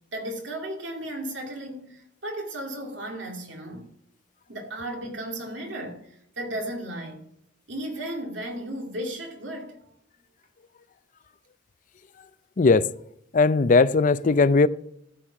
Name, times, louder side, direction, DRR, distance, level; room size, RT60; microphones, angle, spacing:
voice 1, 0.1-3.9 4.5-6.1 6.4-7.2 7.7-9.7, right 1 dB, 75° right, 2.5 m, -34 dB
voice 2, 13.3-14.7, left 4 dB, 45° left, 0.5 m, -18 dB
13.5 x 6.4 x 5.7 m
head